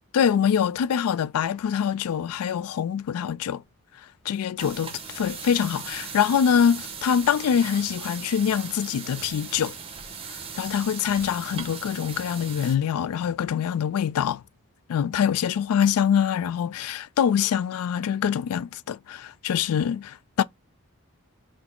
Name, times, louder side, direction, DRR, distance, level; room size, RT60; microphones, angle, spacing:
voice 1, 0.1-3.6 4.3-9.8 10.3-14.4 14.9-20.4, left 8 dB, 80° left, 0.3 m, -24 dB
sound 1, 4.6-12.8, right 6 dB, 25° right, 0.6 m, -38 dB
4.0 x 2.0 x 4.3 m
head